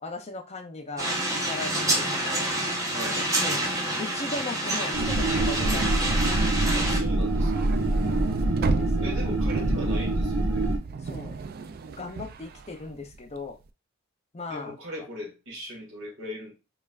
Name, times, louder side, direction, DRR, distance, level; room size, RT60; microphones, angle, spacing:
voice 1, 0.0-2.5 3.1-3.6 4.0-6.2 8.1-8.2 8.6-9.1 9.5-9.7 11.0-11.4 12.0-13.6 14.3-14.7, left 2 dB, 30° left, 6 dB, 0.6 m, -38 dB
sound 1, 1.0-7.0, right 1 dB, 15° right, 0.8 m, -28 dB
sound 2, 4.9-10.8, right 2 dB, 85° right, 0.9 m, -25 dB
voice 2, 6.7-7.7 9.0-10.7 14.5-16.5, equal, 65° right, -1 dB, 1.8 m, -39 dB
sound 3, 7.2-13.5, right 4 dB, 45° right, 0.3 m, -35 dB
5.3 x 2.4 x 2.4 m, 0.27 s
head